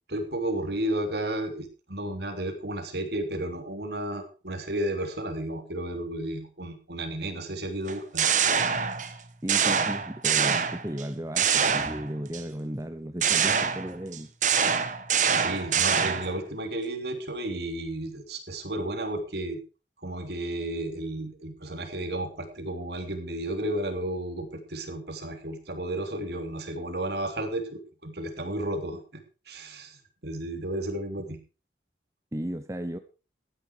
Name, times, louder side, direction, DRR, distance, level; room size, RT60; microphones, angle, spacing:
voice 1, 0.1-8.3 15.3-19.6 20.0-29.0 29.5-30.0 30.2-31.4, right 1 dB, 65° right, 5 dB, 3.3 m, -33 dB
sound 1, 7.9-9.2 9.5-11.0 11.4-12.4 13.2-16.4, right 7 dB, 40° right, 1.4 m, -25 dB
voice 2, 9.4-14.3 32.3-33.0, right 1 dB, 15° right, 9 dB, 0.8 m, -35 dB
15.0 x 9.9 x 4.9 m, 0.34 s
head